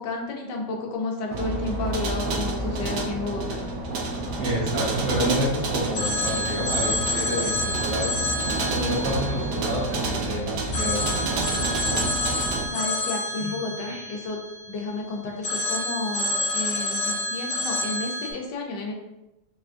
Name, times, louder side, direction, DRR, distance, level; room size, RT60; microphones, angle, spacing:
voice 1, 0.0-3.6 12.7-14.4 14.7-18.9, left 3 dB, 75° left, 0 dB, 1.3 m, -31 dB
sound 1, 1.3-12.7, right 2 dB, 70° right, 1.1 m, -29 dB
voice 2, 4.4-8.1 8.7-11.4 13.4-13.5 13.8-14.0, equal, 50° right, -7 dB, 1.3 m, -29 dB
Telephone, 5.9-10.2 10.7-14.9 15.4-18.3, left 1 dB, 55° left, 0.8 m, -29 dB
4.1 x 2.2 x 2.4 m, 0.95 s
omnidirectional pair, 2.0 m